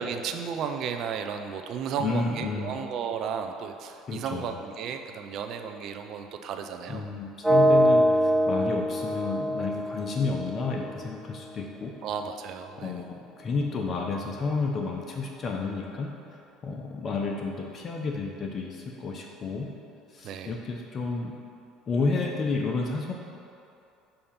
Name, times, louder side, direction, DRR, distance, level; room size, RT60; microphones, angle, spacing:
voice 1, 0.0-7.2 12.0-13.0 20.2-20.6, right 7 dB, 60° right, 6 dB, 0.5 m, -34 dB
voice 2, 2.0-2.7 4.1-4.5 6.9-11.9 12.8-16.1 16.6-19.7 20.1-21.3 21.9-23.1, left 4 dB, 45° left, 1 dB, 0.6 m, -31 dB
sound 1, 7.4-11.4, equal, ahead, 0.5 m, -24 dB
6.6 x 2.8 x 5.6 m, 2.6 s
hypercardioid pair, 70°, 0 cm